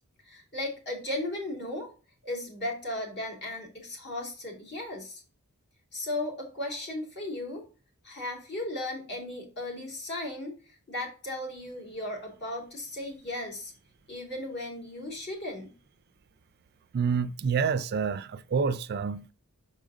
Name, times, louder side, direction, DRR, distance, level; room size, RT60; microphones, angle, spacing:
voice 1, 0.3-1.9 2.2-5.2 5.9-7.6 8.0-13.7 14.1-15.7, left 1 dB, 50° left, 2.8 m, -36 dB
voice 2, 16.9-19.3, right 6 dB, 50° right, 0.4 m, -28 dB
5.6 x 5.0 x 3.9 m
head